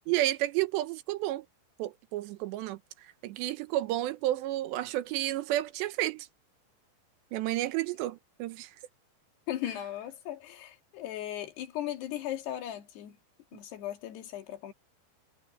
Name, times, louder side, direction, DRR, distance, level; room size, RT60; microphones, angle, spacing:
voice 1, 0.1-1.5 1.8-2.8 3.2-6.3 7.3-8.7, right 15 dB, 85° right, 3.2 m, -31 dB
voice 2, 9.5-13.2 13.5-14.7, left 12 dB, 70° left, 4.1 m, -37 dB
omnidirectional pair, 5.0 m